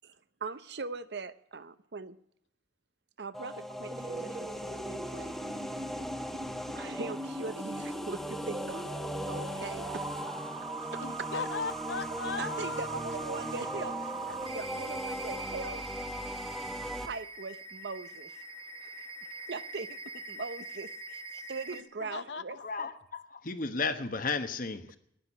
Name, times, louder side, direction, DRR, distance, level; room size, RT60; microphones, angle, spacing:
voice 1, 0.4-2.2 3.2-5.4 6.7-8.9 9.3-10.3 10.9-11.0 12.4-15.8 17.0-18.4 18.8-19.0 19.5-22.6, right 4 dB, 65° right, 0.7 m, -41 dB
sound 1, 3.3-17.1, equal, ahead, 1.0 m, -39 dB
sound 2, 3.9-21.8, right 3 dB, 30° right, 1.2 m, -42 dB
voice 2, 10.9-12.9 22.0-22.6, left 5 dB, 80° left, 0.8 m, -37 dB
voice 3, 22.6-25.0, left 4 dB, 50° left, 1.1 m, -34 dB
10.5 x 10.0 x 9.9 m
head